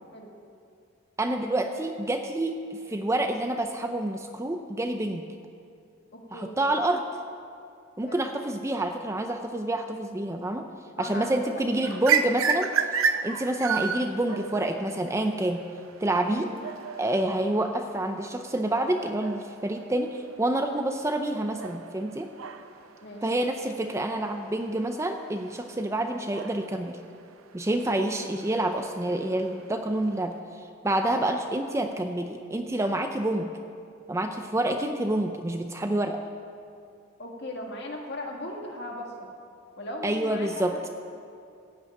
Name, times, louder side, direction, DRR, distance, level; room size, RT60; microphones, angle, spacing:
voice 1, 1.2-5.3 6.3-7.1 8.0-10.7 11.0-15.6 16.0-16.5 17.0-22.3 23.2-27.0 27.5-33.5 34.1-36.2 40.0-40.8, right 1 dB, 15° right, 6 dB, 0.4 m, -28 dB
voice 2, 6.1-6.6 8.1-8.2 11.0-11.6 16.3-16.5 23.0-23.2 27.8-28.0 31.1-31.3 37.2-39.3 39.8-40.9, left 1 dB, 50° left, 0 dB, 1.9 m, -38 dB
sound 1, 11.8-30.4, right 6 dB, 75° right, 0.6 m, -34 dB
15.0 x 5.6 x 8.9 m, 2.4 s
head